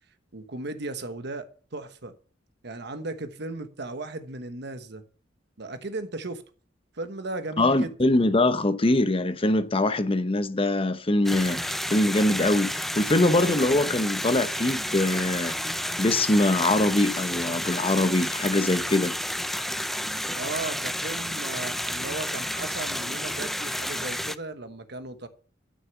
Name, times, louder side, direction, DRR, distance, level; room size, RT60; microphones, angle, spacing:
voice 1, 0.3-2.1 2.6-5.0 5.6-6.4 6.9-7.9 20.3-25.3, right 2 dB, 65° right, 1.3 m, -36 dB
voice 2, 7.6-19.1, left 2 dB, 30° left, 0.9 m, -23 dB
sound 1, 11.2-24.3, equal, ahead, 0.5 m, -31 dB
13.0 x 6.5 x 7.1 m
head